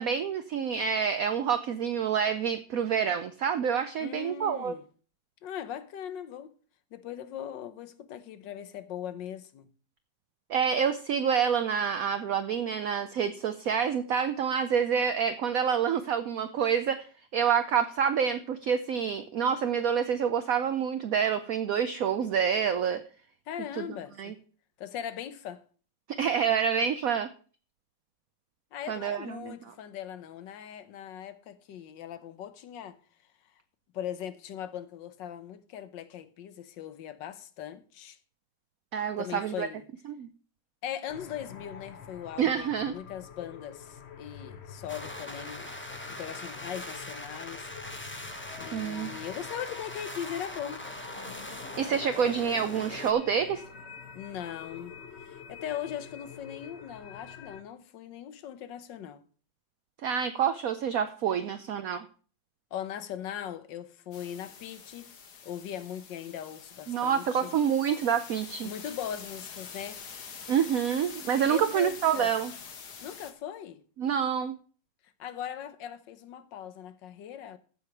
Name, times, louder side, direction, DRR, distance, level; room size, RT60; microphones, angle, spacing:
voice 1, 0.0-4.7 10.5-17.0 17.3-23.0 23.8-23.9 24.2-24.3 26.2-27.3 28.9-29.7 38.9-39.7 40.1-40.3 42.4-43.0 48.7-49.1 51.8-53.6 60.0-62.1 66.9-68.7 70.5-72.5 74.0-74.5, right 7 dB, 65° right, 1.0 m, -27 dB
voice 2, 4.0-4.9 5.4-6.5 6.9-9.7 23.5-24.3 24.8-25.6 28.7-33.0 33.9-38.2 39.2-39.8 40.8-45.7 46.1-47.7 48.6-50.8 54.1-55.0 55.3-59.2 62.7-65.1 65.4-67.6 68.6-70.0 71.3-72.3 73.0-73.8 75.2-77.6, left 10 dB, 80° left, 1.6 m, -39 dB
sound 1, 41.1-57.6, left 7 dB, 45° left, 1.0 m, -47 dB
sound 2, 44.9-53.1, left 1 dB, 10° left, 0.6 m, -41 dB
sound 3, 64.1-73.3, left 6 dB, 60° left, 1.7 m, -46 dB
14.5 x 5.0 x 5.7 m
omnidirectional pair, 1.9 m